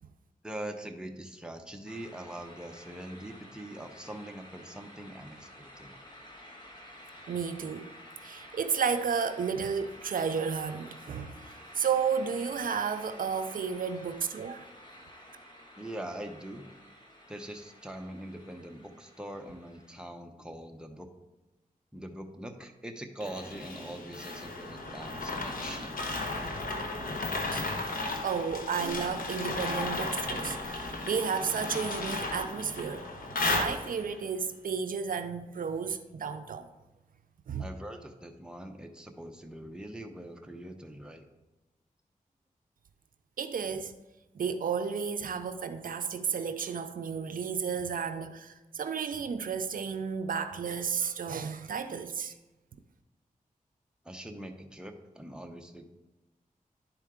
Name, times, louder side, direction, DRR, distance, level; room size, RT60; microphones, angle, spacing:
voice 1, 0.4-5.9 15.8-16.7 17.3-21.1 21.9-26.0 37.6-41.3 54.0-55.9, right 1 dB, 5° right, 0.8 m, -43 dB
sound 1, 1.9-20.0, left 1 dB, 30° left, 1.3 m, -51 dB
voice 2, 7.3-7.9 8.2-14.7 27.5-27.7 28.2-33.1 33.4-36.7 37.5-37.7 43.4-44.0 44.3-52.3, right 6 dB, 75° right, 0.4 m, -32 dB
sound 2, 23.2-34.2, left 2 dB, 75° left, 1.1 m, -34 dB
10.5 x 4.5 x 3.6 m
wide cardioid pair, 75°, 15 cm